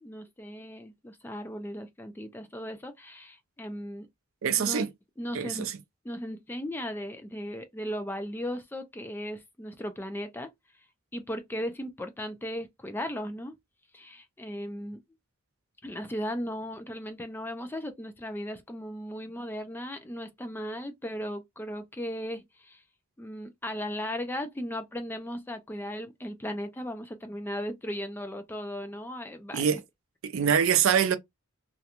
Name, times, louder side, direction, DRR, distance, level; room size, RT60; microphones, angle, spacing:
voice 1, 0.0-4.1 4.6-4.9 5.2-5.7 6.0-10.5 11.1-13.6 13.9-15.0 15.8-22.8 23.2-29.6 30.4-30.5, equal, 10° left, 0.3 m, -37 dB
voice 2, 4.4-4.9 5.3-5.8 29.5-29.8 30.2-31.2, right 8 dB, 75° right, 0.5 m, -24 dB
2.5 x 2.1 x 2.8 m
head